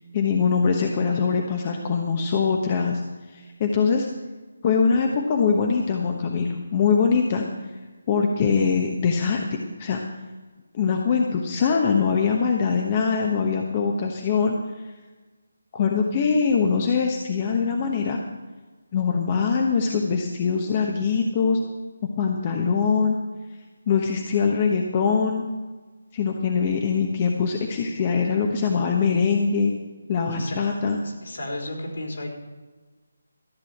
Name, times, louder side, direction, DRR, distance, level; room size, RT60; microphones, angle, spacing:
voice 1, 0.1-3.0 3.3-4.1 4.6-7.4 8.1-9.5 9.8-10.0 10.7-14.5 15.7-18.2 18.9-21.6 22.2-23.2 23.9-25.4 26.1-29.7 30.1-31.0, left 5 dB, 30° left, 2 dB, 1.1 m, -22 dB
voice 2, 31.0-32.3, left 1 dB, 65° left, 0 dB, 4.1 m, -33 dB
14.0 x 6.9 x 7.9 m, 1.3 s
figure-of-eight pair, 160°, 0 cm